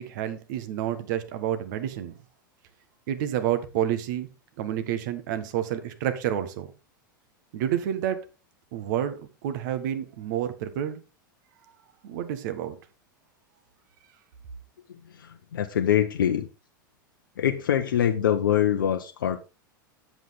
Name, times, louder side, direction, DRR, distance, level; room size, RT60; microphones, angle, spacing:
voice 1, 0.0-2.1 3.1-4.3 4.6-6.7 7.5-8.2 8.7-11.0 12.0-12.8, right 10 dB, 60° right, 1.4 m, -29 dB
voice 2, 14.9-16.5 17.4-19.4, left 10 dB, 75° left, 0.7 m, -24 dB
8.0 x 7.7 x 3.6 m
hypercardioid pair, 95°, 11 cm